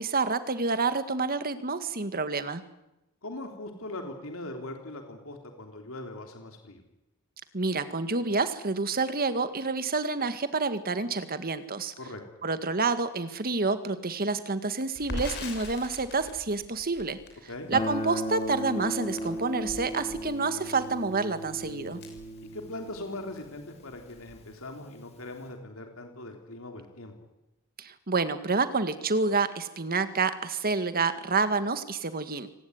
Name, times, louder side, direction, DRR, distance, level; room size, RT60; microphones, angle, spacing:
voice 1, 0.0-2.6 7.5-11.9 12.4-17.2 17.7-22.0 27.8-32.5, right 4 dB, 45° right, 11 dB, 1.9 m, -28 dB
voice 2, 3.2-6.8 12.0-12.2 17.5-17.7 22.5-27.1, left 2 dB, 70° left, 4 dB, 3.6 m, -40 dB
Crackle, 15.0-23.0 23.4-23.5 23.8-24.5, left 1 dB, 55° left, 6.2 m, -42 dB
Guitar, 17.7-24.4, equal, 30° left, 3.5 m, -36 dB
25.5 x 18.5 x 9.5 m, 0.94 s
head